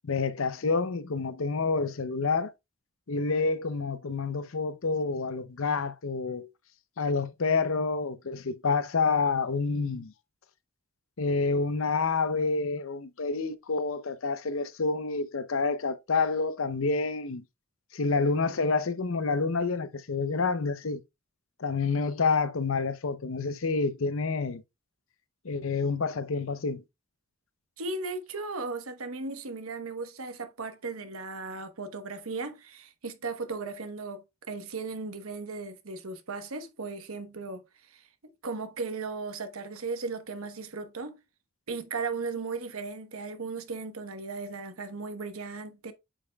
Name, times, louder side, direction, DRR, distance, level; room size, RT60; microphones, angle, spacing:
voice 1, 0.0-2.5 3.1-6.5 7.0-10.1 11.2-17.4 17.9-21.0 21.6-24.6 25.4-26.8, left 4 dB, 75° left, 0.7 m, -28 dB
voice 2, 27.8-38.0 38.4-41.2 41.7-45.9, right 4 dB, 90° right, 1.1 m, -36 dB
8.4 x 5.4 x 2.3 m
head